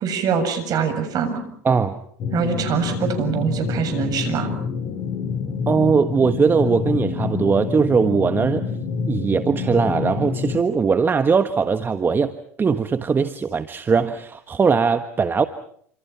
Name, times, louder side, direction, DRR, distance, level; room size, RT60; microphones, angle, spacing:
voice 1, 0.0-1.4 2.3-4.5, right 6 dB, 50° right, 9 dB, 7.4 m, -23 dB
voice 2, 1.6-2.0 5.7-8.6 9.1-12.3 12.6-15.5, right 5 dB, 25° right, 9 dB, 1.4 m, -20 dB
sound 1, 2.2-10.6, left 6 dB, 45° left, 4.3 m, -27 dB
28.0 x 27.0 x 5.8 m, 0.62 s
hypercardioid pair, 85°, 8 cm